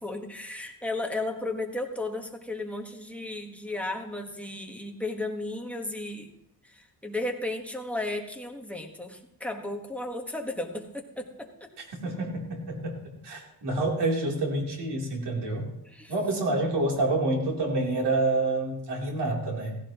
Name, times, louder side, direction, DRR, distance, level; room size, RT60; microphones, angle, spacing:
voice 1, 0.0-6.3 6.7-11.5 15.9-16.1, left 2 dB, 5° left, 1 dB, 1.4 m, -34 dB
voice 2, 12.0-15.7 16.1-19.8, right 2 dB, 75° right, -1 dB, 3.4 m, -28 dB
16.0 x 15.5 x 3.0 m, 0.81 s
wide cardioid pair, 140°, 41 cm